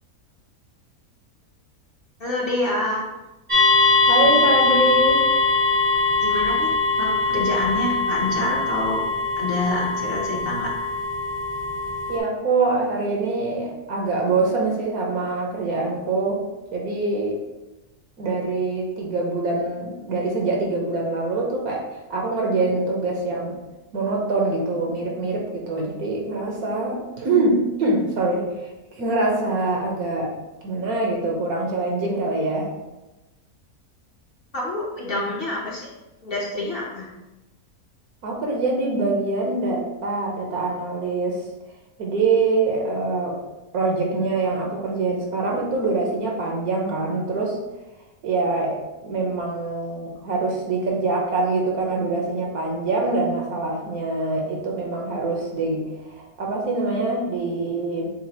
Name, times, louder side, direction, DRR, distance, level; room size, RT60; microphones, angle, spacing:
voice 1, 2.2-3.0 6.2-6.7 7.0-9.0 9.4-10.7 34.5-35.9 36.2-37.1, left 2 dB, 45° left, -4 dB, 0.9 m, -27 dB
sound 1, 3.5-12.2, left 3 dB, 30° right, 0.6 m, -21 dB
voice 2, 4.0-5.2 12.1-16.4 16.7-17.4 18.2-21.8 22.1-23.6 23.9-28.5 29.0-30.3 30.6-32.7 38.2-41.4 42.0-43.4 43.7-47.6 48.2-48.8 49.0-58.1, right 3 dB, 75° right, -1 dB, 1.4 m, -24 dB
7.2 x 2.5 x 2.9 m, 1.0 s
omnidirectional pair, 1.6 m